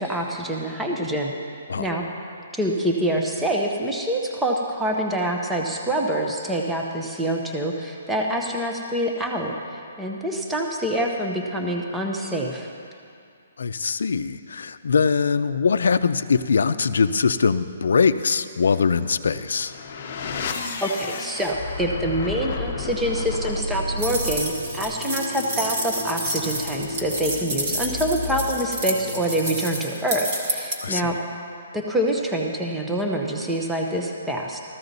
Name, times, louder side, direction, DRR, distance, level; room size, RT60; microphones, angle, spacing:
voice 1, 0.0-1.3 1.8-2.1 2.5-12.7 20.8-31.2 31.7-34.6, right 1 dB, 5° right, 0 dB, 0.6 m, -26 dB
voice 2, 13.6-19.7 30.8-31.1, left 5 dB, 70° left, 12 dB, 0.5 m, -22 dB
sound 1, 19.3-30.0, left 3 dB, 30° left, 1.0 m, -33 dB
sound 2, 24.0-30.8, right 1 dB, 30° right, 1.4 m, -29 dB
14.5 x 14.0 x 4.0 m, 2.4 s
hypercardioid pair, 180°, 0 cm